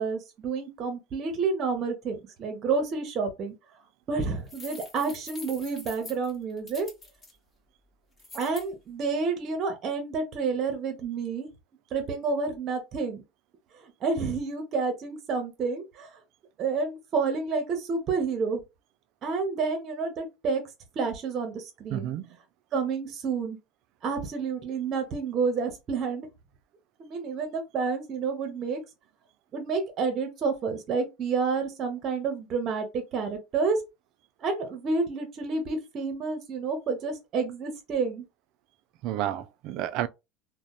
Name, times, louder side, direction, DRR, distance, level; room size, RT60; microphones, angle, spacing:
voice 1, 0.0-3.6 4.1-6.9 8.3-11.5 11.9-13.2 14.0-16.1 16.6-18.6 19.2-20.6 21.0-22.1 22.7-23.6 24.0-26.3 27.0-28.8 29.5-33.8 34.4-38.2, right 4 dB, 45° right, 0.7 m, -29 dB
sound 1, 4.5-7.3 8.2-8.7, left 3 dB, 25° left, 1.1 m, -45 dB
voice 2, 21.9-22.3 39.0-40.1, right 12 dB, 65° right, 0.3 m, -30 dB
2.7 x 2.0 x 2.3 m
supercardioid pair, 115°, 0 cm